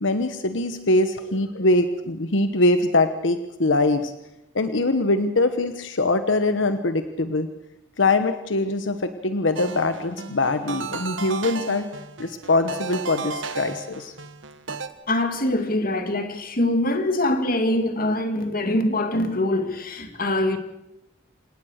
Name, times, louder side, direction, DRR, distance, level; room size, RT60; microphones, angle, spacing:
voice 1, 0.0-4.1 4.5-7.5 8.0-11.9 12.2-14.1, left 2 dB, 80° left, 1.2 m, -22 dB
sound 1, 9.6-14.9, right 4 dB, 85° right, 1.4 m, -34 dB
voice 2, 15.1-20.6, left 1 dB, 50° left, 2.4 m, -23 dB
27.5 x 18.0 x 6.6 m
head